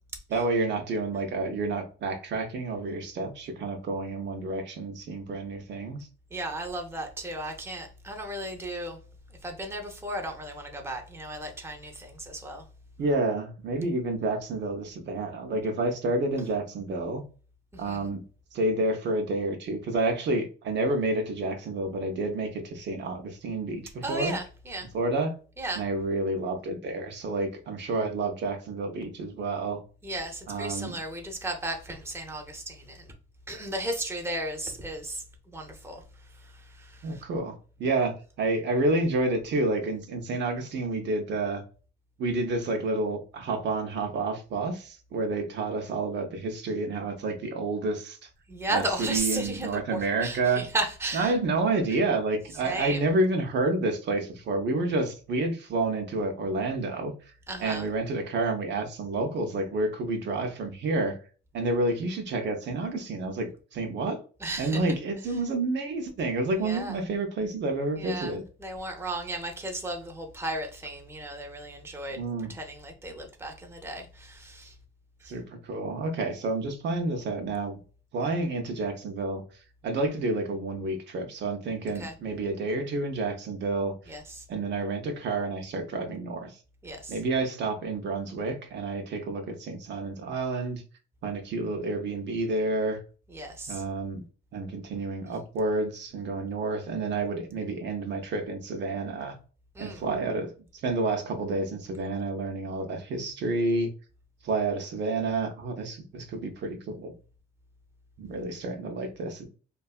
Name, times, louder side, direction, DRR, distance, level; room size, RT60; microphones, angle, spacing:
voice 1, 0.3-6.0 13.0-17.2 17.8-18.2 18.5-24.4 24.9-25.3 25.8-29.8 30.5-30.9 37.0-38.1 38.4-41.6 42.2-48.3 48.7-50.6 51.1-57.1 57.6-61.2 61.5-64.2 64.6-68.4 72.2-72.5 75.3-77.8 78.1-79.4 79.8-84.1 84.5-86.6 87.1-90.8 91.2-93.0 93.7-94.2 94.5-99.4 99.8-103.9 104.4-107.1 108.2-109.4, right 2 dB, 65° right, 0.6 m, -29 dB
voice 2, 6.3-9.0 9.4-12.6 17.7-18.1 24.0-24.9 25.6-25.8 30.0-33.1 33.5-36.0 36.3-37.2 48.5-51.3 52.6-53.1 57.5-57.9 64.4-64.9 66.5-67.0 68.0-72.2 72.5-74.7 75.2-75.3 81.9-82.1 84.1-84.4 86.8-87.2 93.3-93.8 99.8-100.1, right 1 dB, 10° right, 0.6 m, -35 dB
2.6 x 2.3 x 2.3 m
cardioid pair, 90°, 20 cm